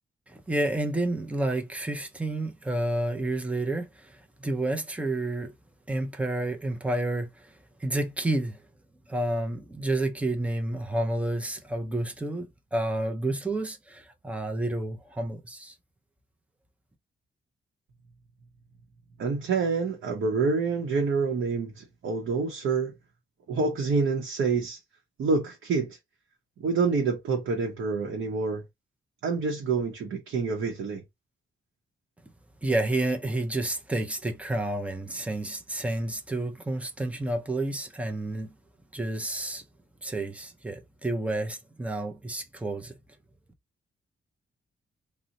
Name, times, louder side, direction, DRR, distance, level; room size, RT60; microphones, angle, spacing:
voice 1, 0.3-5.5 5.9-7.5 7.8-8.6 9.1-15.7 32.6-38.5 38.9-39.6 40.0-42.9, right 2 dB, 5° right, 0.4 m, -30 dB
voice 2, 19.2-22.9 23.5-24.8 25.2-26.0 26.6-28.6 29.2-31.0, right 4 dB, 75° right, 0.7 m, -27 dB
2.6 x 2.1 x 3.9 m
wide cardioid pair, 160°, 20 cm